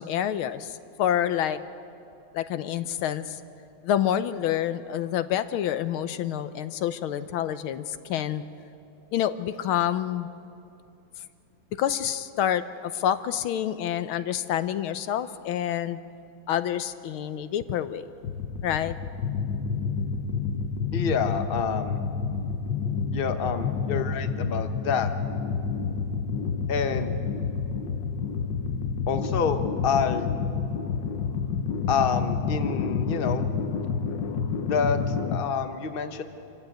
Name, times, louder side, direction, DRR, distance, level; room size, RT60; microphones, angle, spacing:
voice 1, 0.0-1.6 2.3-3.4 3.8-8.4 9.1-10.3 11.8-16.0 16.5-18.1 18.6-19.0, left 10 dB, 75° left, 12 dB, 1.5 m, -28 dB
sound 1, 18.2-35.4, left 5 dB, 60° left, 1.5 m, -29 dB
voice 2, 20.9-22.0 23.1-25.1 26.7-27.2 29.1-30.3 31.9-33.5 34.6-36.2, left 6 dB, 35° left, 7 dB, 1.0 m, -28 dB
26.5 x 15.5 x 9.2 m, 2.7 s
omnidirectional pair, 2.3 m